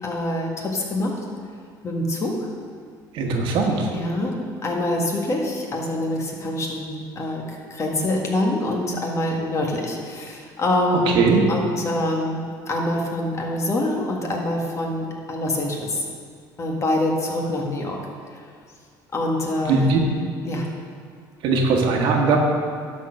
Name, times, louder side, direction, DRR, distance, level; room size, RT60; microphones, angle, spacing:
voice 1, 0.0-1.2 1.8-2.3 3.9-4.3 4.6-16.0 16.6-18.0 18.3-18.4 19.1-20.0 20.4-20.7, left 1 dB, 35° left, 0 dB, 1.7 m, -25 dB
voice 2, 3.1-3.9 11.1-11.4 19.6-20.0 21.4-22.4, right 4 dB, 70° right, 1 dB, 1.5 m, -19 dB
12.0 x 4.3 x 6.5 m, 2.1 s
cardioid pair, 110°, 9 cm